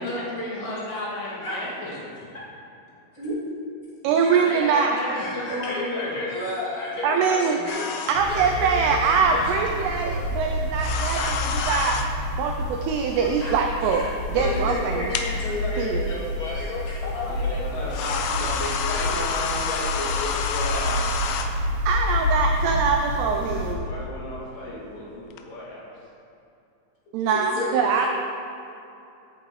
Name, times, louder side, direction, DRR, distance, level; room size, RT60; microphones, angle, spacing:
voice 1, 0.0-2.3 4.3-6.1 17.3-21.0 23.3-25.9, left 1 dB, 70° left, -7 dB, 4.3 m, -33 dB
voice 2, 4.0-5.0 7.0-7.6 8.1-11.4 11.7-12.0 12.4-15.1 15.8-16.0 21.9-23.8 27.1-28.1, right 5 dB, 90° right, 3 dB, 2.3 m, -23 dB
voice 3, 4.7-9.7 11.1-11.8 13.4-13.5 13.8-17.7 18.3-18.6 18.9-19.8 21.2-21.5 27.3-28.1, left 1 dB, 25° left, -9 dB, 1.4 m, -32 dB
sound 1, 7.7-8.2 10.8-12.1 14.7-14.8 15.1-15.3 16.7-16.8 17.9-21.5 25.3-25.4, left 6 dB, 90° left, 3.1 m, -28 dB
sound 2, 8.1-23.7, left 1 dB, 70° right, 1.1 m, -29 dB
13.5 x 8.4 x 3.2 m, 2.7 s
omnidirectional pair, 5.4 m